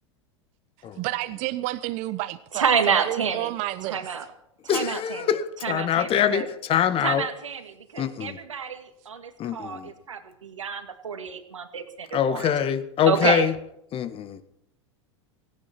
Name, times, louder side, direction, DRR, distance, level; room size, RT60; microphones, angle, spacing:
voice 1, 1.0-4.1, right 17 dB, 50° right, 0.9 m, -30 dB
voice 2, 2.5-3.5 3.9-4.3 4.6-5.4 5.6-6.5 7.0-12.6 13.1-13.5, right 6 dB, 90° right, 2.0 m, -28 dB
voice 3, 4.7-7.2 8.0-8.4 9.4-9.9 12.1-13.5 13.9-14.4, left 9 dB, 35° left, 1.6 m, -24 dB
17.0 x 16.5 x 4.4 m
hypercardioid pair, 95°, 16 cm